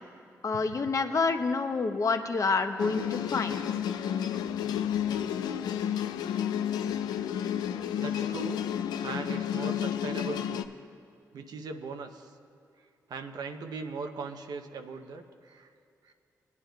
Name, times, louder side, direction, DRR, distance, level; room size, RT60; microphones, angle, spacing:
voice 1, 0.4-3.7, left 4 dB, 50° left, 7 dB, 0.7 m, -28 dB
sound 1, 2.8-10.6, left 9 dB, 90° left, 0.3 m, -31 dB
voice 2, 8.0-8.6 9.0-10.7 11.3-12.3 13.1-15.7 16.0-16.1, right 4 dB, 70° right, 6 dB, 0.7 m, -39 dB
21.5 x 9.5 x 2.2 m, 2.4 s
supercardioid pair, 55°, 7 cm